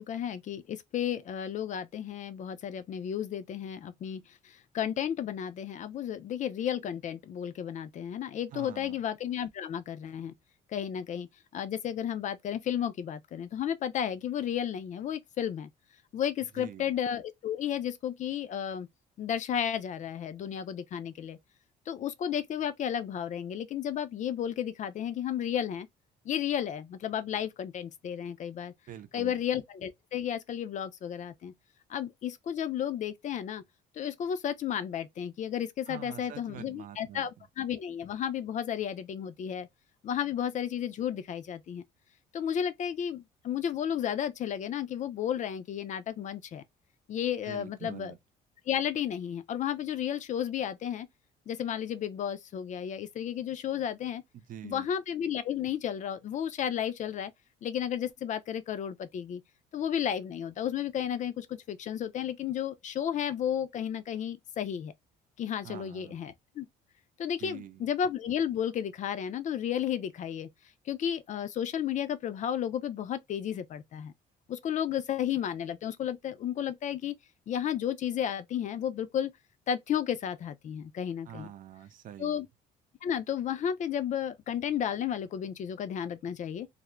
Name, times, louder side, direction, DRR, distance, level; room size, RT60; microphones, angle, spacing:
voice 1, 0.0-10.3 10.7-11.3 11.5-15.7 16.1-18.9 19.2-21.4 21.9-25.9 26.2-28.7 29.1-31.5 31.9-33.6 33.9-39.7 40.0-41.8 42.3-46.6 47.1-48.1 48.7-51.1 51.5-54.2 54.6-57.3 57.6-59.4 59.7-64.9 65.4-66.7 67.2-70.5 70.9-74.1 74.5-77.1 77.5-79.3 79.7-81.5 82.2-82.5 83.0-86.7, left 9 dB, 45° left, 0.5 m, -33 dB
voice 2, 8.5-9.0 16.6-17.0 28.9-29.4 35.9-37.5 47.4-48.2 54.3-54.9 65.6-66.2 67.4-67.8 81.3-82.4, right 10 dB, 55° right, 0.6 m, -46 dB
2.4 x 2.0 x 3.1 m
cardioid pair, 110°, 17 cm